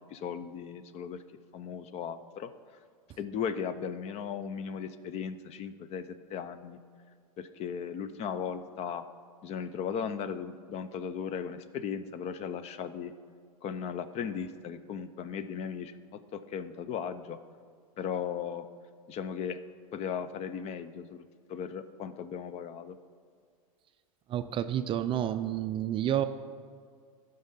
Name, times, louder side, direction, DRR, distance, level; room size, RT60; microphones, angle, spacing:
voice 1, 0.1-1.2 1.5-2.5 3.2-6.8 7.4-9.0 9.4-13.1 13.6-15.9 16.3-17.4 18.0-18.7 19.1-19.6 19.9-23.0, left 7 dB, 35° left, 12 dB, 0.5 m, -37 dB
voice 2, 24.3-26.2, right 11 dB, 30° right, 10 dB, 0.4 m, -30 dB
13.5 x 5.4 x 5.6 m, 2.1 s
hypercardioid pair, 110°, 18 cm